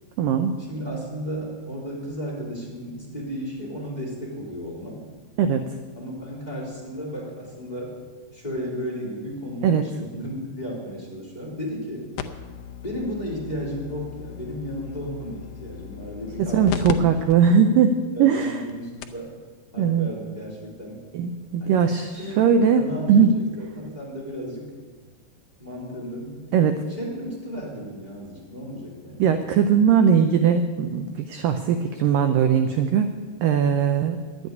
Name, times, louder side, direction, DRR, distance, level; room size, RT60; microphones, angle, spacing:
voice 1, 0.2-0.5 5.4-5.7 9.6-9.9 16.4-17.9 18.2-18.6 19.8-20.1 21.1-22.8 23.1-23.3 26.5-26.8 29.2-33.1 33.4-34.2, right 7 dB, 80° right, 7 dB, 2.0 m, -20 dB
voice 2, 0.7-5.0 6.0-8.0 8.3-12.1 12.8-17.1 18.1-19.3 19.7-21.0 21.6-21.8 22.1-22.4 22.8-24.7 25.6-26.5 27.0-29.3, equal, 10° left, -4 dB, 2.9 m, -34 dB
sound 1, 12.2-16.9 17.3-17.4 18.0-18.1 18.7-18.8 19.0-19.3 20.5-20.6, left 11 dB, 80° left, 2.0 m, -35 dB
11.5 x 8.1 x 9.5 m, 1.4 s
omnidirectional pair, 4.7 m